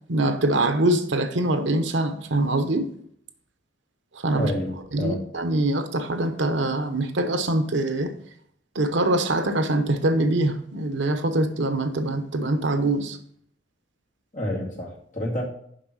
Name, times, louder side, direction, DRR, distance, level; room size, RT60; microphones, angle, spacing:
voice 1, 0.1-2.9 4.1-4.5 4.9-8.1 8.7-13.2, right 1 dB, 75° right, 0.9 m, -24 dB
voice 2, 4.3-5.2 14.3-15.4, left 1 dB, 40° left, 2.2 m, -29 dB
7.1 x 5.4 x 6.2 m
head